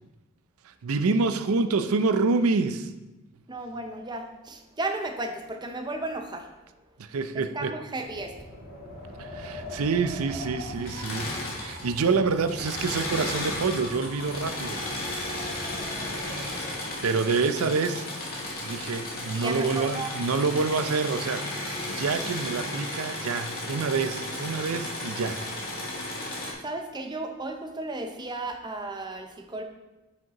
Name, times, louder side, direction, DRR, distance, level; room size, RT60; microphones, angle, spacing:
voice 1, 0.6-2.9 7.0-7.8 9.2-14.8 17.0-18.1 18.6-25.4, right 4 dB, 80° right, 10 dB, 0.5 m, -27 dB
voice 2, 3.5-6.5 7.3-8.3 19.3-20.1 26.6-29.6, right 2 dB, 20° right, 4 dB, 0.6 m, -34 dB
Wind, 8.0-16.8, left 1 dB, 80° left, 2.3 m, -41 dB
Engine / Mechanisms, 10.7-12.1 12.4-26.5, left 1 dB, 45° left, 1.6 m, -34 dB
9.3 x 5.2 x 3.0 m, 1.0 s
head